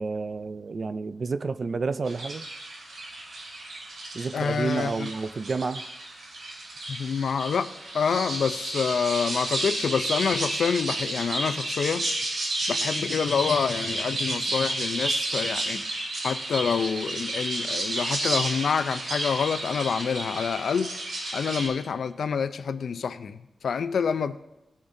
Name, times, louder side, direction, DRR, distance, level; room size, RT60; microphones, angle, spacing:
voice 1, 0.0-2.5 4.1-5.9, right 4 dB, 45° right, 0.4 m, -30 dB
sound 1, 2.1-21.7, right 1 dB, 75° right, 2.5 m, -32 dB
voice 2, 4.3-5.1 6.9-12.1 12.7-15.8 16.2-21.0 21.3-24.4, left 6 dB, 90° left, 0.4 m, -27 dB
17.5 x 7.1 x 2.7 m
wide cardioid pair, 165°, 0 cm